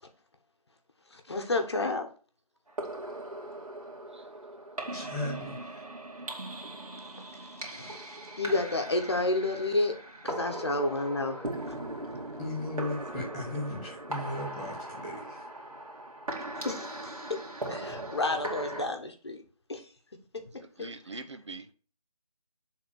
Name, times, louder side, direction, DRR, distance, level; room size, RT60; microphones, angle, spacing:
voice 1, 1.1-2.1 7.7-8.0 8.4-9.9 10.2-11.5 16.6-16.9 17.3-17.4 17.7-19.4 19.7-19.8 20.8-20.9, left 2 dB, 45° left, 1.1 m, -30 dB
sound 1, 2.7-18.8, right 1 dB, 65° right, 2.3 m, -39 dB
voice 2, 4.9-5.8 12.4-15.4, left 2 dB, 10° left, 1.8 m, -36 dB
voice 3, 20.6-21.7, right 3 dB, 50° right, 0.8 m, -43 dB
7.1 x 3.8 x 6.2 m
figure-of-eight pair, 175°, 20 cm